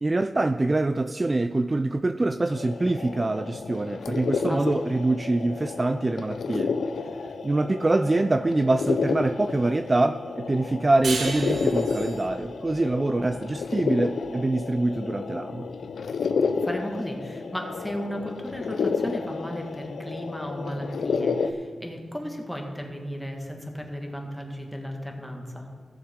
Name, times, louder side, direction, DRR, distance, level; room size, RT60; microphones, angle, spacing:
voice 1, 0.0-6.7 7.4-15.7, right 2 dB, 30° right, 9 dB, 0.3 m, -25 dB
sound 1, 2.5-21.5, left 5 dB, 85° left, 0.4 m, -31 dB
voice 2, 4.5-4.8 16.6-25.7, equal, 5° left, 2 dB, 1.7 m, -35 dB
sound 2, 11.0-14.2, right 4 dB, 80° right, 1.0 m, -35 dB
15.5 x 7.1 x 3.6 m, 2.1 s
cardioid pair, 75°, 0 cm